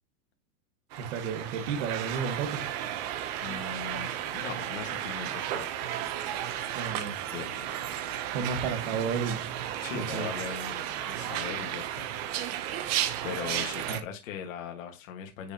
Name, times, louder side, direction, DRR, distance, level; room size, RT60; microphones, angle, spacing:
sound 1, 0.9-14.0, right 11 dB, 30° right, 0.6 m, -34 dB
voice 1, 1.0-2.6 6.8-7.1 8.3-9.5 9.9-10.3 13.9-14.0, right 6 dB, 50° right, 1.6 m, -32 dB
voice 2, 3.4-6.0 7.2-7.8 9.8-12.1 13.2-15.5, left 7 dB, 60° left, 1.6 m, -40 dB
9.7 x 5.4 x 2.8 m
supercardioid pair, 170°, 44 cm